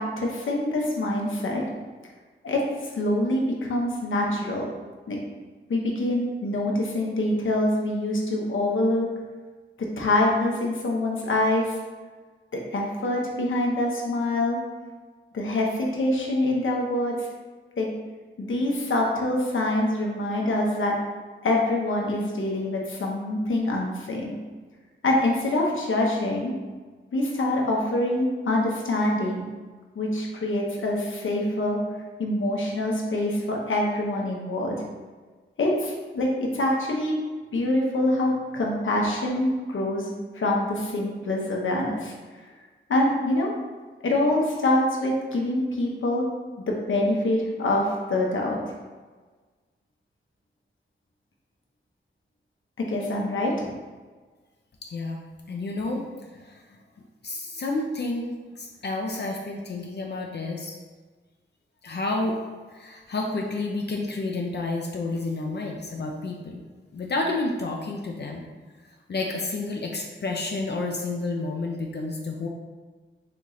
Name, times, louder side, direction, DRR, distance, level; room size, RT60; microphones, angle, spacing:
voice 1, 0.0-1.6 2.4-2.6 2.9-4.7 5.1-5.2 5.7-9.1 9.8-11.8 12.5-14.6 15.3-17.3 17.8-17.9 18.4-20.9 21.4-24.3 25.0-26.5 27.1-29.4 29.9-31.8 32.2-34.7 35.6-37.1 37.5-42.1 42.9-43.5 44.0-46.2 46.7-48.7 52.8-53.7, left 1 dB, 80° left, -1 dB, 0.9 m, -25 dB
voice 2, 54.8-55.2 55.5-56.8 57.2-60.8 61.8-62.4 62.7-66.6 66.9-68.4 69.1-72.5, left 2 dB, 60° left, 0 dB, 0.5 m, -30 dB
4.3 x 3.1 x 3.9 m, 1.4 s
wide cardioid pair, 75°, 20 cm